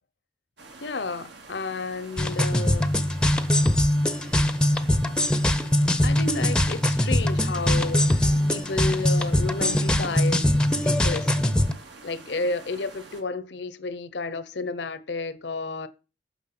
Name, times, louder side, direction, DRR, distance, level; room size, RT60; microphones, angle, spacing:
sound 1, 0.6-13.2, right 3 dB, 75° right, 2.4 m, -47 dB
voice 1, 0.8-2.9 6.0-11.6 12.0-15.9, left 3 dB, 70° left, 0.8 m, -32 dB
sound 2, 2.2-11.7, left 1 dB, 5° left, 0.7 m, -22 dB
9.6 x 5.9 x 5.9 m
head